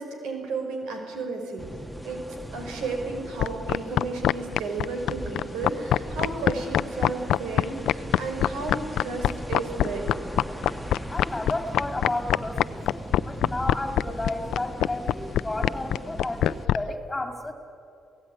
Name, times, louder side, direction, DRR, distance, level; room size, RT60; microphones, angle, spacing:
voice 1, 0.0-1.7 2.0-10.1, right 3 dB, 90° right, 4 dB, 5.4 m, -33 dB
sound 1, 1.6-16.7, equal, 5° right, 1.6 m, -39 dB
sound 2, 3.4-16.8, left 12 dB, 80° left, 0.5 m, -22 dB
voice 2, 11.1-17.5, left 2 dB, 15° left, 5 dB, 3.0 m, -32 dB
28.5 x 17.0 x 9.8 m, 2.5 s
cardioid pair, 90°, 0 cm